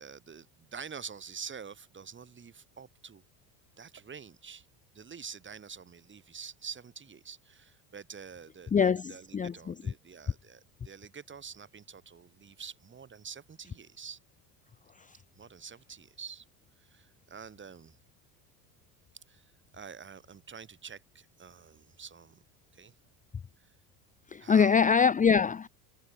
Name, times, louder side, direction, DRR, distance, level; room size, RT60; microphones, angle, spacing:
voice 1, 0.0-3.2 3.8-4.7 4.9-14.2 15.3-16.4 16.8-18.0 19.3-22.4 22.7-22.9 23.6-23.7 24.4-24.9, right 6 dB, 25° right, 5.0 m, -47 dB
voice 2, 8.7-9.7 24.3-25.7, left 6 dB, 15° left, 0.8 m, -24 dB
supercardioid pair, 100°, 44 cm